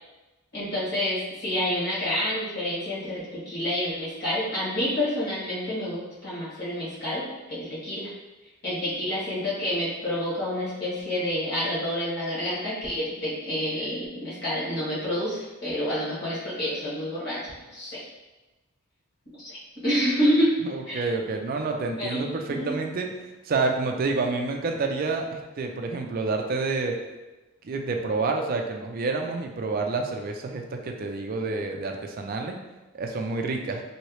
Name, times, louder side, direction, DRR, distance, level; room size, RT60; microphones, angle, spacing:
voice 1, 0.5-8.1 8.6-18.0 19.4-20.5 20.9-21.0 22.0-22.2 22.5-22.7, equal, 50° left, -9 dB, 1.3 m, -28 dB
voice 2, 20.6-23.1 23.4-26.9 27.6-32.6 32.9-33.8, right 3 dB, 40° right, 3 dB, 0.3 m, -28 dB
3.0 x 2.7 x 3.0 m, 1.1 s
head